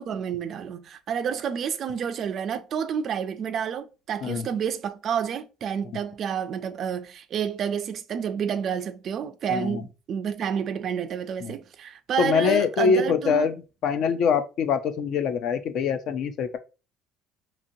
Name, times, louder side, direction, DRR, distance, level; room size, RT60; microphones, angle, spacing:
voice 1, 0.0-13.5, right 8 dB, 45° right, 0.3 m, -29 dB
voice 2, 12.2-13.5 13.8-16.6, left 6 dB, 55° left, 0.4 m, -24 dB
2.9 x 2.8 x 2.6 m
cardioid pair, 145°, 0 cm